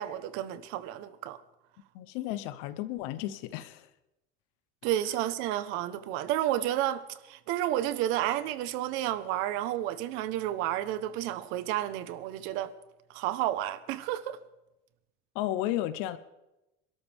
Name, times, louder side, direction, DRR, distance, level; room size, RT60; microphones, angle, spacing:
voice 1, 0.0-1.4 4.8-12.7 13.1-14.4, right 13 dB, 75° right, 1.1 m, -31 dB
voice 2, 1.9-3.9 15.3-16.2, left 14 dB, 85° left, 0.8 m, -33 dB
27.5 x 13.0 x 3.6 m
cardioid pair, 170°, 21 cm